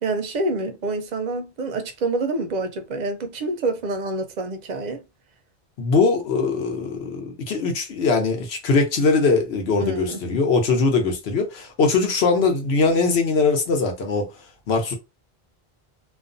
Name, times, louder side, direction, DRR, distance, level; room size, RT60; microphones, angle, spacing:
voice 1, 0.0-5.0 9.8-10.2, right 2 dB, 55° right, 0.5 m, -27 dB
voice 2, 5.8-14.3 14.7-14.9, left 4 dB, 80° left, 1.0 m, -21 dB
2.4 x 2.3 x 2.5 m
omnidirectional pair, 1.1 m